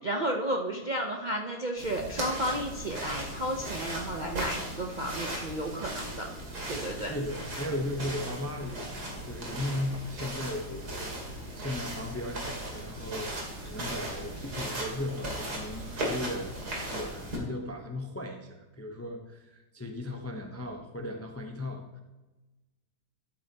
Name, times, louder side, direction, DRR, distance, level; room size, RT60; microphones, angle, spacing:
voice 1, 0.0-6.3 6.7-7.1, right 1 dB, 40° right, 0 dB, 0.7 m, -32 dB
sound 1, 1.8-17.4, right 1 dB, 65° right, 3.0 m, -37 dB
voice 2, 6.9-22.0, left 1 dB, 15° left, 3 dB, 0.6 m, -37 dB
13.0 x 8.8 x 2.9 m, 1.1 s
omnidirectional pair, 1.9 m